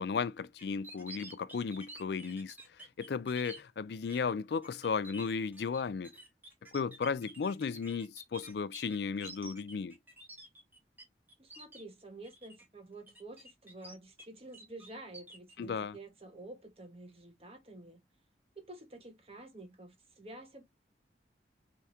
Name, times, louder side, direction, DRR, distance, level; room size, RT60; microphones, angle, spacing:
voice 1, 0.0-2.5 3.0-6.1 6.7-10.0 15.6-16.0, left 5 dB, 65° left, 0.4 m, -35 dB
sound 1, 0.6-3.6 4.1-4.3 4.6-11.0 11.3-11.8 12.2-12.6 13.1-14.3 14.5-15.5, right 1 dB, 10° right, 1.2 m, -50 dB
voice 2, 11.4-18.0 18.5-20.6, right 2 dB, 35° right, 1.3 m, -50 dB
4.5 x 3.5 x 2.7 m
head